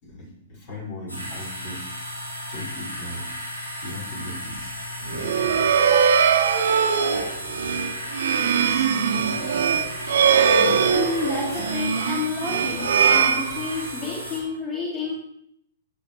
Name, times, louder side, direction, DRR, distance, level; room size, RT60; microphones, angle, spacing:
voice 1, 0.0-1.9 2.5-3.3 3.8-4.7 5.1-5.5 6.8-6.9 7.6-7.8, left 1 dB, 40° left, -2 dB, 5.0 m, -38 dB
sound 1, 1.1-14.4, left 1 dB, 90° left, 5.1 m, -35 dB
sound 2, 5.1-14.1, right 7 dB, 60° right, 1.0 m, -21 dB
voice 2, 10.5-15.1, left 4 dB, 20° left, -4 dB, 2.3 m, -30 dB
15.5 x 8.3 x 3.1 m, 0.72 s
figure-of-eight pair, 115°, 0 cm